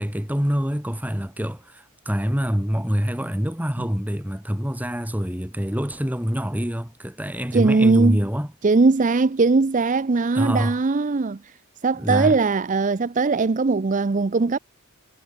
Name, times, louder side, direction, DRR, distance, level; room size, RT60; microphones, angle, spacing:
voice 1, 0.0-8.5 10.3-10.8 12.0-12.4, equal, 5° right, 2.2 m, -25 dB
voice 2, 7.5-8.2 8.6-11.5 11.8-14.6, right 3 dB, 35° right, 0.5 m, -20 dB
head